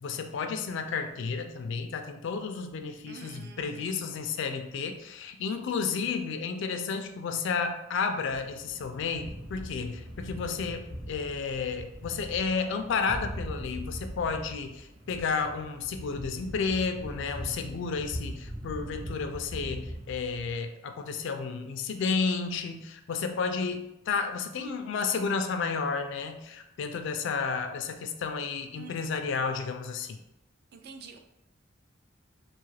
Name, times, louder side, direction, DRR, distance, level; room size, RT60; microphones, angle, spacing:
voice 1, 0.0-30.2, left 5 dB, 65° left, 6 dB, 0.3 m, -32 dB
voice 2, 3.1-4.2 28.8-28.9 30.7-31.2, right 5 dB, 55° right, 5 dB, 0.3 m, -47 dB
sound 1, 8.2-20.5, equal, 70° right, 1.0 m, -41 dB
2.8 x 2.4 x 3.1 m, 0.91 s
head